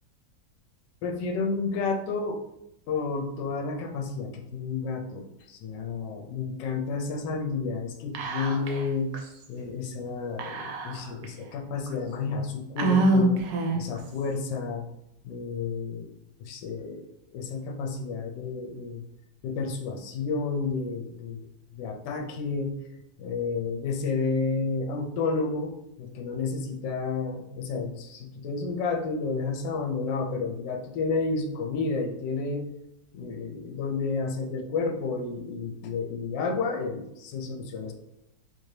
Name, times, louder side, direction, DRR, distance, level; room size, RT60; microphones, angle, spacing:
voice 1, 1.0-2.4 2.9-9.1 9.5-13.4 13.7-14.9 15.2-16.1 16.4-19.0 19.4-21.5 21.7-22.8 23.2-32.7 33.1-37.9, left 4 dB, 85° left, 2 dB, 1.3 m, -31 dB
Whispering, 8.1-8.9 9.1-9.2 10.4-11.2 11.9-12.0 12.8-14.0, right 2 dB, 80° right, 1.3 m, -25 dB
3.8 x 2.7 x 3.2 m, 0.83 s
omnidirectional pair, 1.9 m